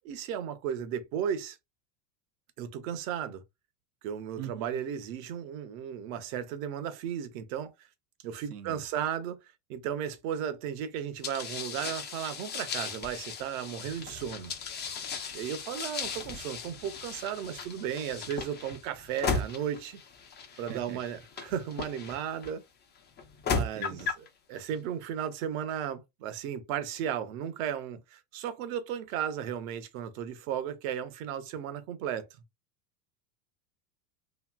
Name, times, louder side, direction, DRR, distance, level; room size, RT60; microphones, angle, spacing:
voice 1, 0.0-1.6 2.6-3.4 4.0-7.7 8.2-9.4 9.7-14.5 15.3-20.0 20.6-22.6 23.5-32.2, right 9 dB, 60° right, 0.9 m, -35 dB
voice 2, 4.4-4.8 8.5-8.8 20.5-21.0 23.5-24.1, right 9 dB, 90° right, 0.8 m, -43 dB
sound 1, 11.2-22.5 23.2-24.3, left 5 dB, 25° left, 0.6 m, -36 dB
3.0 x 2.7 x 2.2 m
supercardioid pair, 120°, 45 cm